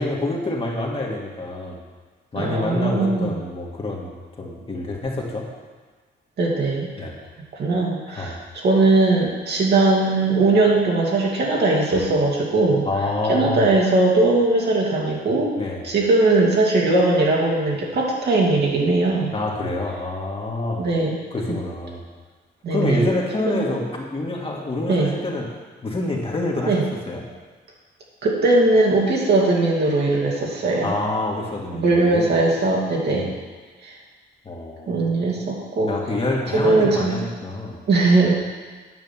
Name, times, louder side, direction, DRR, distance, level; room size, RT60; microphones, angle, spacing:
voice 1, 0.0-1.8 2.3-5.4 7.0-7.1 8.1-8.4 12.9-13.7 15.6-15.9 19.3-20.9 21.3-22.0 22.7-25.5 25.8-27.2 30.8-32.3 33.1-33.3 34.5-35.0 35.9-37.8, left 2 dB, 30° left, -2 dB, 2.0 m, -27 dB
voice 2, 2.3-3.4 6.4-6.9 7.5-12.9 13.3-15.5 15.8-19.3 20.8-21.2 22.6-23.1 23.4-23.7 24.9-25.1 26.7-26.8 28.2-30.9 31.7-33.3 33.8-33.9 34.9-35.9 36.5-37.1 37.9-38.4, right 2 dB, 60° right, -3 dB, 2.5 m, -19 dB
9.4 x 5.2 x 7.3 m, 1.4 s
cardioid pair, 90°, 20 cm